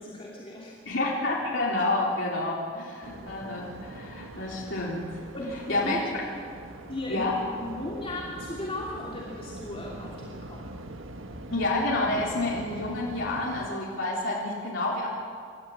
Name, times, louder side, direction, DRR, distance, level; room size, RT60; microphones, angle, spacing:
voice 1, 0.0-0.8 3.2-3.3 5.3-6.1 6.9-10.7, left 1 dB, 30° left, -4 dB, 2.9 m, -36 dB
voice 2, 0.9-5.1 5.7-6.0 7.1-7.4 11.5-15.1, left 2 dB, 70° left, -5 dB, 4.1 m, -29 dB
Waves surf, 3.0-13.7, right 1 dB, 90° right, 1.5 m, -43 dB
27.0 x 13.5 x 8.7 m, 2.2 s
head